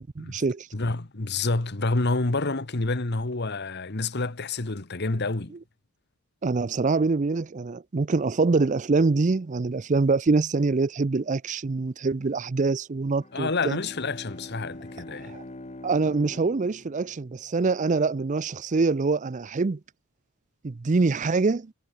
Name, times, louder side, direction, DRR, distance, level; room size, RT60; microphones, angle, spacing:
voice 1, 0.0-0.7 6.4-13.8 15.2-15.4 15.8-19.8 20.6-21.7, right 3 dB, 35° right, 0.5 m, -25 dB
voice 2, 0.7-5.5 13.3-15.4, left 3 dB, 50° left, 1.4 m, -28 dB
Bowed string instrument, 13.0-17.8, left 1 dB, 30° left, 1.3 m, -44 dB
head